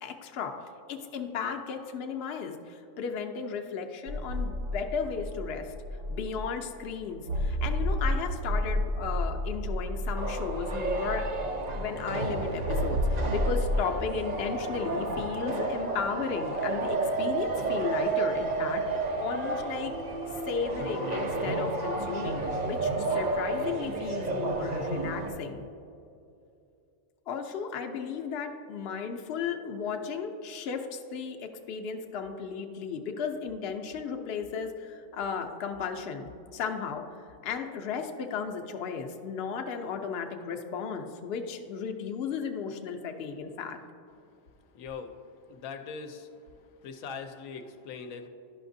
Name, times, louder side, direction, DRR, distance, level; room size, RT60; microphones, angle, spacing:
voice 1, 0.0-5.7 6.1-11.3 11.8-19.9 20.5-25.6 27.3-37.0 37.4-43.8, left 6 dB, 60° left, 4 dB, 0.8 m, -35 dB
sound 1, 4.1-6.7 7.3-11.9 12.6-13.8, left 1 dB, 75° right, 1.0 m, -31 dB
sound 2, 10.2-25.3, right 3 dB, 45° right, 0.5 m, -31 dB
voice 2, 44.7-45.1 45.5-46.3 46.8-48.3, left 5 dB, 85° left, 6 dB, 1.0 m, -40 dB
11.5 x 5.7 x 2.6 m, 2.6 s
omnidirectional pair, 1.4 m